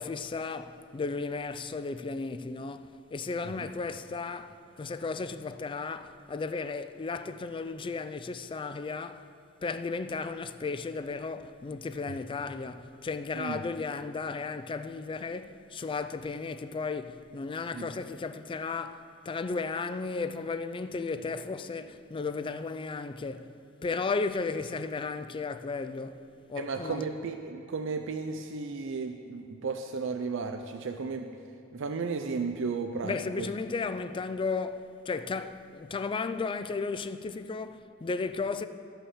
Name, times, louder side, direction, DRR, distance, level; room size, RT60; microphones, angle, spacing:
voice 1, 0.0-9.3 9.6-23.5 23.8-27.0 33.0-38.7, left 4 dB, 25° left, 0.3 m, -34 dB
voice 2, 26.6-31.3 31.7-33.5, right 4 dB, 65° right, 0.5 m, -34 dB
12.5 x 5.7 x 7.2 m
head